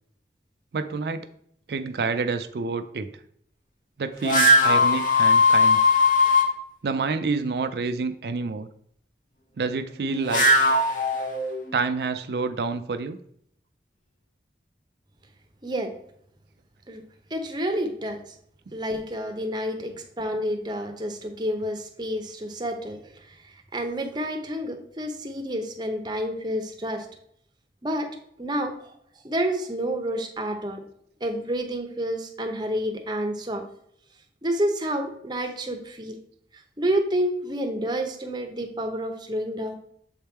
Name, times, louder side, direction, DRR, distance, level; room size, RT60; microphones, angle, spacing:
voice 1, 0.7-1.3 1.7-3.1 4.0-5.8 6.8-8.7 9.6-10.7 11.7-13.2, right 4 dB, 65° right, 9 dB, 0.4 m, -28 dB
sound 1, 4.2-6.5 10.0-11.8, left 2 dB, 45° left, 1.0 m, -19 dB
voice 2, 15.6-15.9 16.9-17.0 17.3-18.2 18.7-23.0 23.7-27.1 27.8-28.1 28.4-28.9 29.2-30.8 31.2-33.6 34.4-36.2 36.8-39.7, equal, 25° right, 5 dB, 0.8 m, -29 dB
7.3 x 3.5 x 4.4 m, 0.68 s
head